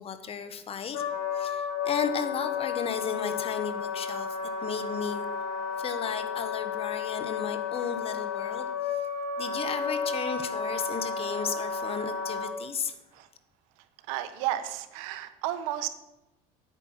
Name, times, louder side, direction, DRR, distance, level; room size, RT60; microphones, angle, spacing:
voice 1, 0.0-5.2 5.8-9.0 9.4-13.0, left 6 dB, 35° left, 10 dB, 1.1 m, -34 dB
Wind instrument woodwind instrument, 0.9-12.5, left 6 dB, 75° left, 2.1 m, -32 dB
voice 2, 14.1-15.9, right 13 dB, 85° right, 11 dB, 1.0 m, -32 dB
9.2 x 9.0 x 5.7 m, 0.95 s
cardioid pair, 125°, 17 cm